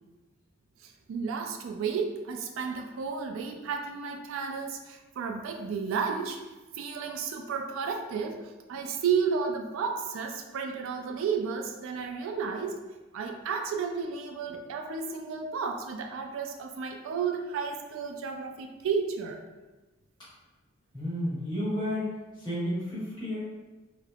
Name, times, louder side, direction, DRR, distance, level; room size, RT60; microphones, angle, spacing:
voice 1, 0.8-6.4 6.7-12.8 13.1-19.4, right 6 dB, 80° right, 3 dB, 0.3 m, -32 dB
voice 2, 20.9-22.1 22.4-23.6, equal, 20° left, -11 dB, 1.3 m, -31 dB
3.2 x 2.0 x 2.3 m, 1.2 s
head